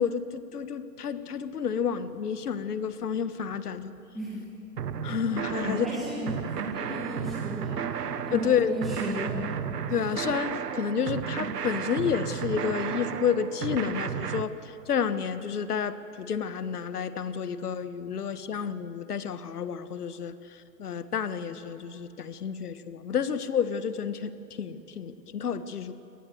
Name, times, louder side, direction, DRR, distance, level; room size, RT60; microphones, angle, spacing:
voice 1, 0.0-3.9 5.0-5.9 8.3-8.7 9.9-20.3 20.8-24.3 24.6-25.9, left 7 dB, 65° left, 12 dB, 1.4 m, -30 dB
voice 2, 4.1-4.5 5.6-7.8 8.3-9.5, equal, ahead, -7 dB, 1.6 m, -35 dB
sound 1, 4.8-10.3, left 6 dB, 30° left, 1.8 m, -51 dB
sound 2, 4.8-14.4, right 8 dB, 75° right, 1.3 m, -33 dB
24.0 x 19.5 x 7.8 m, 2.8 s
hypercardioid pair, 165°, 48 cm